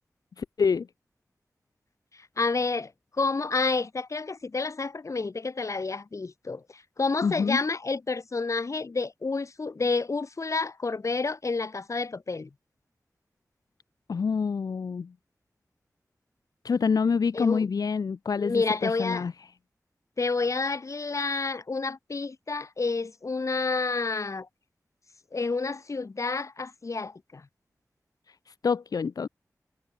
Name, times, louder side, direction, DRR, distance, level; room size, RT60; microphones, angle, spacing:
voice 1, 0.4-0.9 7.2-7.6 14.1-15.1 16.6-19.3 28.6-29.3, left 5 dB, 90° left, 0.9 m, -26 dB
voice 2, 2.4-2.9 3.2-12.5 17.3-17.7 18.4-19.3 20.2-24.5 25.3-27.4, left 3 dB, 55° left, 1.6 m, -29 dB
wide cardioid pair, 60°, 6 cm